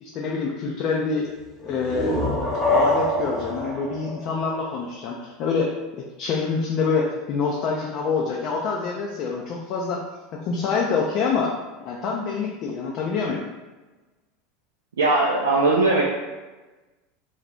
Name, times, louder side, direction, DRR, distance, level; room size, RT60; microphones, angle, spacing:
voice 1, 0.0-1.3 1.6-2.2 2.7-10.0 10.3-13.4, left 5 dB, 50° left, -1 dB, 0.4 m, -26 dB
sound 1, 1.6-5.2, left 1 dB, ahead, 0.8 m, -25 dB
voice 2, 15.0-16.0, right 2 dB, 85° right, -3 dB, 0.3 m, -19 dB
2.6 x 2.3 x 3.4 m, 1.2 s
hypercardioid pair, 80°, 0 cm